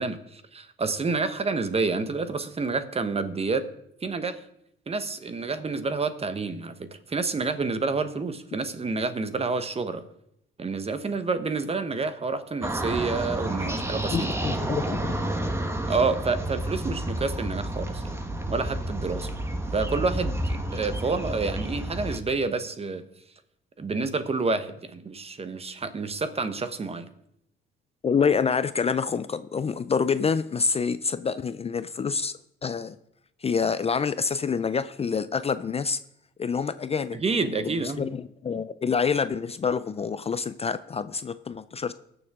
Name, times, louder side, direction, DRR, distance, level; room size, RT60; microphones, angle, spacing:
voice 1, 0.0-3.7 4.0-4.4 4.9-10.0 10.6-14.3 15.9-18.2 18.5-19.3 19.7-23.0 23.8-27.1 37.1-38.0, right 4 dB, 30° right, 11 dB, 1.1 m, -29 dB
sound 1, 12.6-22.2, right 1 dB, 15° right, 1.3 m, -30 dB
voice 2, 14.1-15.1 28.0-32.3 32.6-33.0 33.4-36.0 36.4-37.2 37.6-41.9, left 5 dB, 30° left, 14 dB, 0.5 m, -27 dB
19.5 x 7.0 x 3.7 m, 0.77 s
cardioid pair, 90°, 20 cm